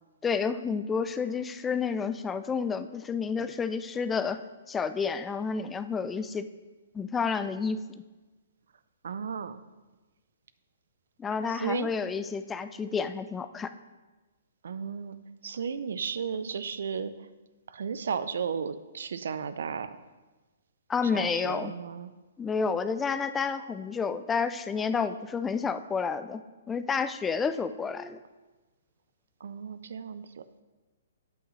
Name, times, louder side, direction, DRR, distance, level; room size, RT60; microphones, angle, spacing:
voice 1, 0.2-4.4 4.7-6.5 6.9-7.8 11.2-13.7 20.9-21.7 22.4-26.4 26.7-28.2, left 5 dB, 15° left, 11 dB, 0.3 m, -30 dB
voice 2, 9.0-9.6 11.5-11.9 14.6-15.2 15.4-17.3 17.7-20.0 21.0-22.1 29.4-30.4, right 6 dB, 75° right, 13 dB, 0.4 m, -34 dB
8.5 x 7.8 x 3.1 m, 1.2 s
hypercardioid pair, 140°, 0 cm